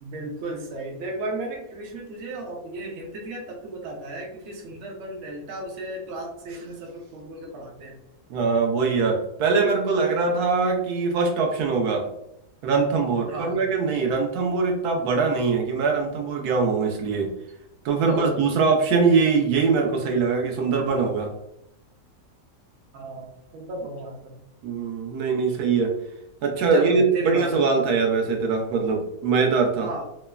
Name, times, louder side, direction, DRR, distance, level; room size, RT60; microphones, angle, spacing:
voice 1, 0.0-7.9 13.3-13.6 18.0-18.3 22.9-24.2 26.7-27.6 29.8-30.0, right 1 dB, 60° right, 0 dB, 0.8 m, -34 dB
voice 2, 8.3-12.1 12.6-17.3 17.8-21.3 24.6-25.9 26.4-29.9, right 4 dB, 85° right, 1 dB, 1.1 m, -22 dB
3.1 x 2.0 x 2.2 m, 0.79 s
omnidirectional pair, 1.6 m